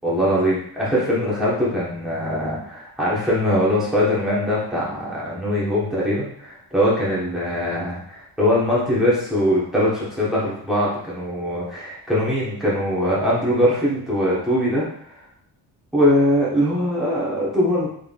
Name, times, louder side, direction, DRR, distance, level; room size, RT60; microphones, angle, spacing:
voice 1, 0.0-14.8 15.1-15.2 15.9-17.9, equal, ahead, -8 dB, 1.2 m, -21 dB
3.7 x 3.5 x 2.4 m, 0.66 s
wide cardioid pair, 180°, 43 cm